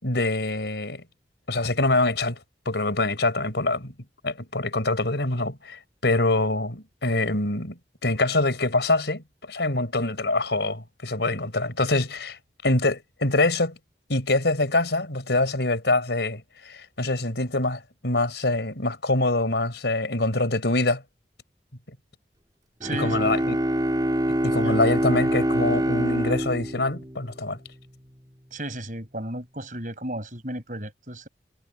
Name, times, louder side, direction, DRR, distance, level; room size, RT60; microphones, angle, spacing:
voice 1, 0.0-1.0 1.5-2.4 2.7-3.9 4.2-12.4 12.6-13.8 14.1-21.0 22.9-23.6 24.3-27.6, left 2 dB, 85° left, 4.4 m, -25 dB
Bowed string instrument, 22.8-27.8, right 1 dB, 25° right, 3.4 m, -25 dB
voice 2, 22.8-23.5 24.6-24.8 28.5-31.3, right 1 dB, 45° right, 5.5 m, -34 dB
head